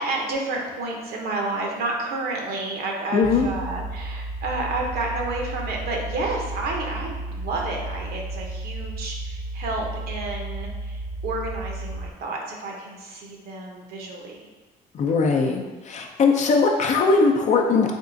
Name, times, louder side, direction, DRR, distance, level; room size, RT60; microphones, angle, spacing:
voice 1, 0.0-14.5, right 2 dB, 65° right, 0 dB, 0.8 m, -30 dB
voice 2, 3.1-3.5 14.9-17.9, left 4 dB, 45° left, 2 dB, 0.5 m, -20 dB
sound 1, 3.2-12.1, right 2 dB, 30° right, 0.7 m, -33 dB
3.5 x 2.4 x 3.9 m, 1.3 s
cardioid pair, 110°, 17 cm